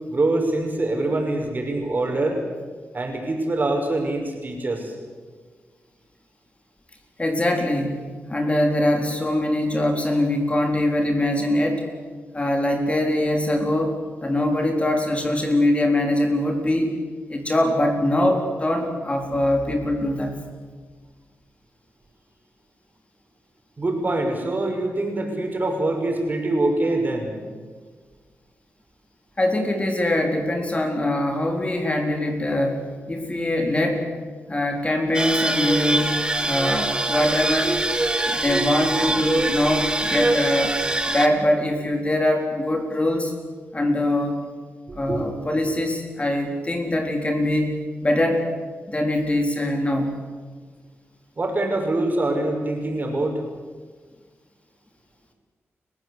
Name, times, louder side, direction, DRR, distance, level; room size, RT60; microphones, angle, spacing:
voice 1, 0.1-2.4 2.9-4.9 23.8-27.4 45.1-45.2 51.4-53.4, right 2 dB, 40° right, 2 dB, 6.1 m, -24 dB
voice 2, 7.2-11.9 12.3-16.9 17.3-20.4 29.4-34.1 34.5-36.2 36.4-37.8 38.3-40.8 41.1-43.3 43.7-44.4 44.9-47.8 48.0-48.6 48.9-50.2, left 1 dB, 25° left, 3 dB, 4.0 m, -23 dB
sound 1, 35.1-41.3, right 2 dB, 20° right, 2.3 m, -23 dB
29.5 x 16.0 x 8.1 m, 1.5 s
cardioid pair, 75°, 5 cm